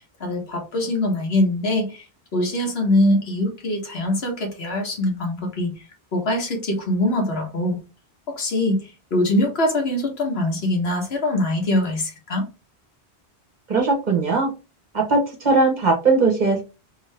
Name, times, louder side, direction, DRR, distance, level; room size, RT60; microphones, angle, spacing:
voice 1, 0.2-2.0 2.3-5.7 6.1-7.8 8.4-8.8 9.1-12.4, left 1 dB, 75° left, 1.3 m, -23 dB
voice 2, 13.7-14.5 14.9-16.6, right 3 dB, 45° right, 1.0 m, -19 dB
3.0 x 2.7 x 3.2 m
omnidirectional pair, 1.1 m